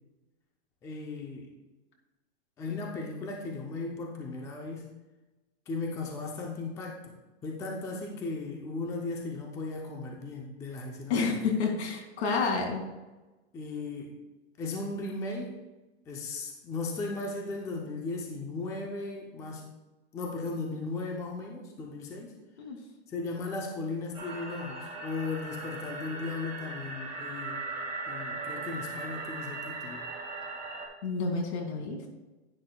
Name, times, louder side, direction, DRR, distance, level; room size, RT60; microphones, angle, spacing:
voice 1, 0.8-1.5 2.6-4.9 5.7-7.1 7.4-11.4 13.5-14.1 14.6-15.6 16.1-19.7 20.1-22.3 23.1-27.6 28.1-30.1, left 3 dB, 10° left, 1 dB, 0.5 m, -36 dB
voice 2, 11.1-12.9 22.6-22.8 31.0-32.0, left 4 dB, 70° left, 3 dB, 2.3 m, -29 dB
sound 1, 24.1-30.9, right 3 dB, 20° right, 2.2 m, -38 dB
10.5 x 9.6 x 2.2 m, 1.1 s
supercardioid pair, 165°, 34 cm